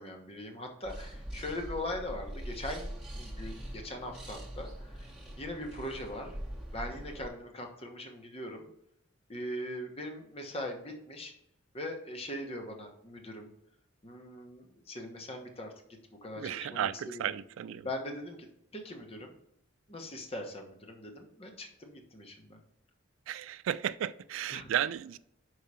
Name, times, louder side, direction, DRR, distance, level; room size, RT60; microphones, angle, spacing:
voice 1, 0.0-5.1 5.4-6.4 6.7-8.7 9.3-11.3 11.7-13.5 14.0-15.7 16.2-17.3 17.8-18.5 18.7-19.3 19.9-22.6 24.5-24.7, left 1 dB, 30° left, 1.1 m, -41 dB
sound 1, 0.8-7.3, equal, 5° right, 1.2 m, -43 dB
voice 2, 16.4-17.9 23.3-25.2, right 10 dB, 85° right, 0.3 m, -34 dB
5.5 x 4.8 x 5.6 m
head